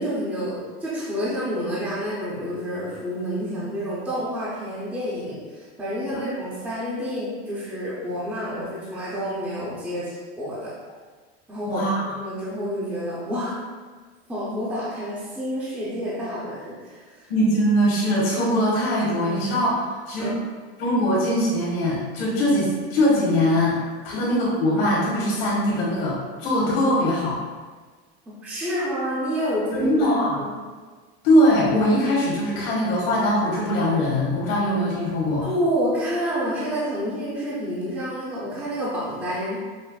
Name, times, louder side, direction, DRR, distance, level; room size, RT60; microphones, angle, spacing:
voice 1, 0.0-10.8 11.5-11.8 12.2-13.6 14.3-17.2 20.2-20.4 24.1-24.2 28.4-30.6 35.4-39.6, equal, 5° right, -9 dB, 0.4 m, -29 dB
voice 2, 17.3-20.3 20.8-23.8 24.0-27.4 29.7-30.4 31.2-35.4, equal, 65° left, -6 dB, 1.2 m, -21 dB
5.5 x 2.0 x 2.3 m, 1.4 s
supercardioid pair, 155°, 32 cm